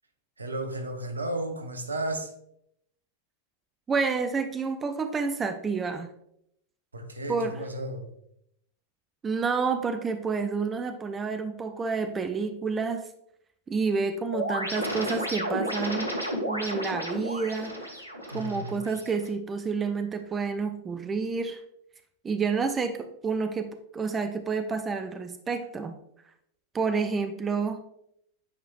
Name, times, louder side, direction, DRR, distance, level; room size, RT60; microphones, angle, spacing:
voice 1, 0.4-2.3 6.9-8.1 18.3-18.8, right 1 dB, 80° right, 5 dB, 0.9 m, -33 dB
voice 2, 3.9-6.1 7.3-7.6 9.2-13.1 13.7-16.1 16.5-17.7 18.3-21.6 22.2-25.9 26.7-27.8, right 5 dB, 20° right, 8 dB, 0.5 m, -29 dB
sound 1, 14.3-19.3, equal, 90° left, 1.0 m, -32 dB
8.7 x 4.9 x 2.4 m, 0.75 s
figure-of-eight pair, 90°, 0 cm